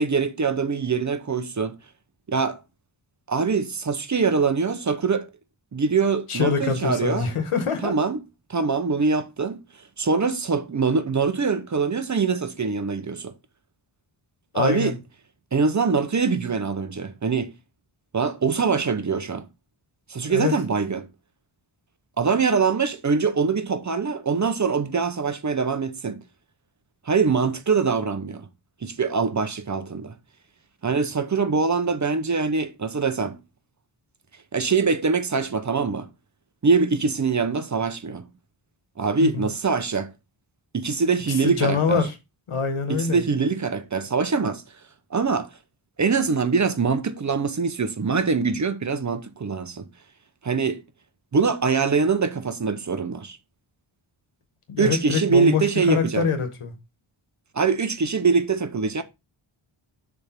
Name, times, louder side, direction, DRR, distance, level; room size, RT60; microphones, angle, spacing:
voice 1, 0.0-1.7 2.3-2.6 3.3-5.3 5.7-7.3 7.8-8.2 8.5-9.6 10.0-13.3 14.5-14.9 15.5-17.5 18.1-19.5 20.1-21.1 22.2-26.2 27.1-28.5 28.8-30.2 30.8-33.4 34.5-36.1 36.6-38.2 39.0-40.1 40.7-42.0 42.9-44.6 45.1-45.5 46.0-49.9 50.4-50.8 51.3-53.4 54.8-56.3 57.5-59.0, right 5 dB, 35° right, 0.8 m, -23 dB
voice 2, 6.3-7.9 14.5-15.0 20.3-20.5 39.2-39.5 41.3-42.1 42.5-43.2 54.7-56.7, left 5 dB, 85° left, 1.7 m, -24 dB
6.9 x 3.5 x 5.8 m
wide cardioid pair, 130°, 49 cm